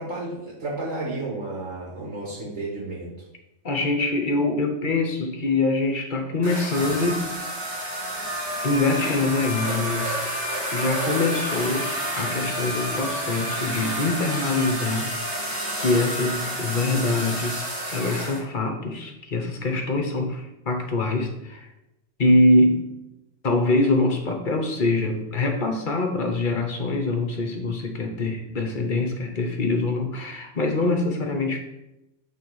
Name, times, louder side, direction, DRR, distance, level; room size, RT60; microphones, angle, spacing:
voice 1, 0.0-3.1, right 2 dB, 70° right, -4 dB, 1.8 m, -32 dB
voice 2, 3.6-7.2 8.6-10.2 10.7-15.1 15.8-21.7 22.2-22.9 23.4-31.6, left 2 dB, 45° left, 3 dB, 0.9 m, -24 dB
sound 1, 6.4-18.4, equal, 30° right, 2.2 m, -29 dB
6.9 x 3.3 x 4.6 m, 0.92 s
omnidirectional pair, 1.3 m